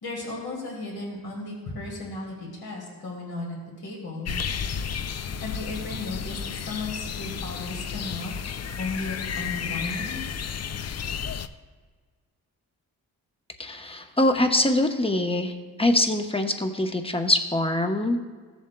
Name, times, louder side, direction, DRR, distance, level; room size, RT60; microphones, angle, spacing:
voice 1, 0.0-4.3 5.4-8.3 8.8-10.2, left 2 dB, 70° left, -4 dB, 2.5 m, -35 dB
sound 1, 4.2-11.5, left 7 dB, 40° left, 0.5 m, -32 dB
voice 2, 13.6-15.5 15.8-18.2, left 1 dB, 15° left, 5 dB, 0.9 m, -23 dB
15.0 x 7.2 x 2.3 m, 1.5 s
cardioid pair, 65°, 39 cm